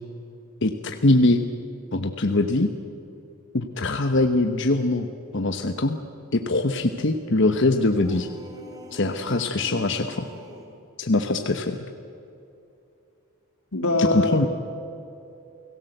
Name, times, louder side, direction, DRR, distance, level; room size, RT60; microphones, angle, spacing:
voice 1, 0.6-1.4 1.9-2.7 3.5-5.1 5.3-6.0 6.3-8.3 8.9-10.3 11.0-11.8 14.0-14.5, left 2 dB, 55° left, 7 dB, 1.1 m, -22 dB
sound 1, 7.9-10.8, equal, 15° right, 2.7 m, -44 dB
voice 2, 13.7-14.5, left 2 dB, 85° left, 3 dB, 3.0 m, -23 dB
29.5 x 17.5 x 8.0 m, 2.7 s
head